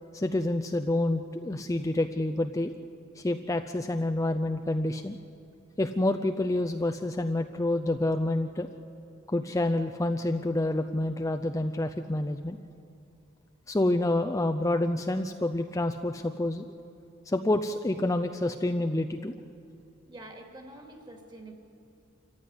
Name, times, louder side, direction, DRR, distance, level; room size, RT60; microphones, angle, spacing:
voice 1, 0.1-2.7 3.2-5.2 5.8-8.7 9.3-12.6 13.7-16.6 17.3-19.3, left 1 dB, 15° left, 6 dB, 0.5 m, -28 dB
voice 2, 20.1-21.5, right 1 dB, 25° right, 3 dB, 2.6 m, -46 dB
25.5 x 15.0 x 9.7 m, 2.6 s
head